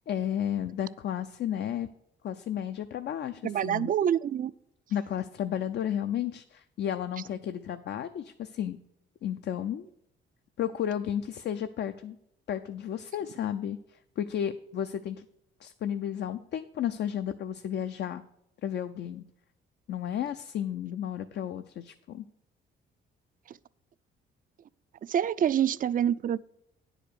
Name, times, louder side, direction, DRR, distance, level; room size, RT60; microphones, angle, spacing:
voice 1, 0.1-1.9 2.2-3.9 4.9-8.8 9.2-9.9 10.6-12.2 12.5-15.3 15.6-18.2 18.6-19.2 19.9-22.2, left 10 dB, 60° left, 9 dB, 0.5 m, -33 dB
voice 2, 3.4-4.5 23.5-23.6 25.0-26.4, right 9 dB, 45° right, 18 dB, 0.4 m, -26 dB
9.9 x 4.9 x 6.7 m, 0.82 s
cardioid pair, 90°, 20 cm